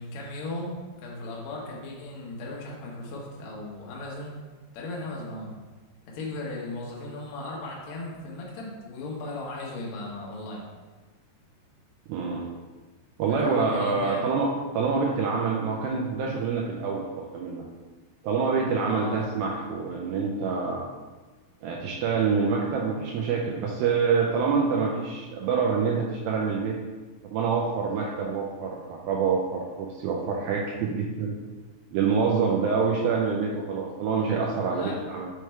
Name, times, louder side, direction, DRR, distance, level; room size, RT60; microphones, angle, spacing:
voice 1, 0.0-4.4 4.7-5.5 6.1-10.6 13.3-14.4 18.7-19.3 34.7-35.0, left 2 dB, 75° left, -3 dB, 1.6 m, -37 dB
voice 2, 12.1-12.5 13.2-17.6 18.2-20.9 21.6-26.8 27.3-31.4 31.9-35.3, right 5 dB, 85° right, -1 dB, 2.1 m, -26 dB
6.6 x 3.3 x 4.4 m, 1.3 s
omnidirectional pair, 4.8 m